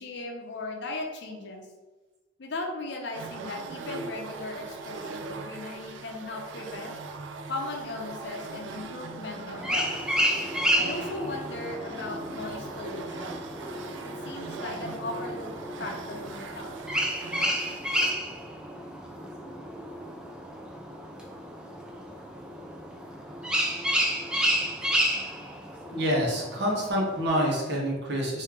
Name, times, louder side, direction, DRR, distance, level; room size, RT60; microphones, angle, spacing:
voice 1, 0.0-1.6 2.4-7.0 7.5-9.9 10.8-13.4 14.0-15.5 15.8-16.7, left 2 dB, 65° left, 2 dB, 0.6 m, -37 dB
sound 1, 3.1-18.3, right 4 dB, 90° right, 0.4 m, -40 dB
sound 2, 9.5-27.3, equal, 5° right, 0.3 m, -31 dB
voice 2, 25.8-28.4, equal, 65° right, -3 dB, 1.0 m, -27 dB
3.1 x 2.7 x 3.6 m, 1.2 s
head